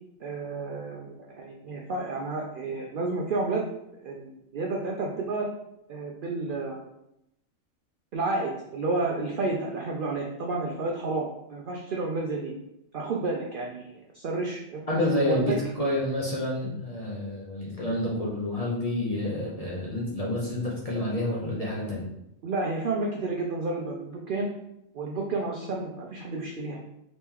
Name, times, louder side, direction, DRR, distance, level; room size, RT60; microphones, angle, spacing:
voice 1, 0.2-3.7 4.0-5.5 5.9-6.8 8.1-12.5 12.9-14.8 15.1-15.6 22.4-24.5 24.9-26.8, right 3 dB, 85° right, 0 dB, 0.4 m, -31 dB
voice 2, 14.9-22.0, left 1 dB, 40° left, -5 dB, 0.5 m, -29 dB
3.0 x 2.9 x 3.6 m, 0.82 s
omnidirectional pair, 1.4 m